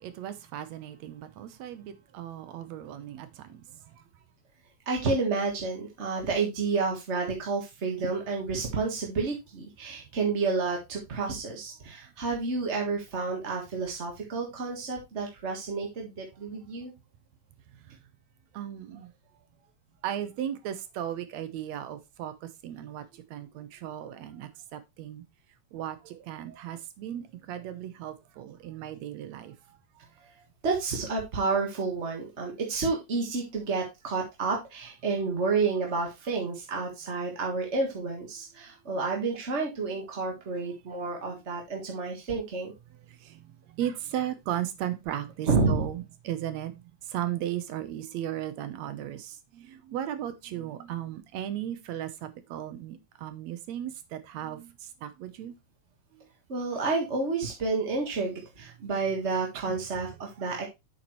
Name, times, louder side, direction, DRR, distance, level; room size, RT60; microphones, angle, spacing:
voice 1, 0.0-3.6 18.5-19.1 20.0-23.0 23.3-25.2 25.7-29.5 41.0-41.1 43.2-43.4 43.8-46.7 47.1-54.7 55.0-55.5 59.7-59.8, right 11 dB, 75° right, 2.1 m, -36 dB
voice 2, 4.8-16.9 30.6-42.7 45.4-45.8 56.5-60.6, right 4 dB, 35° right, 1.2 m, -30 dB
8.2 x 7.3 x 3.1 m
omnidirectional pair, 3.4 m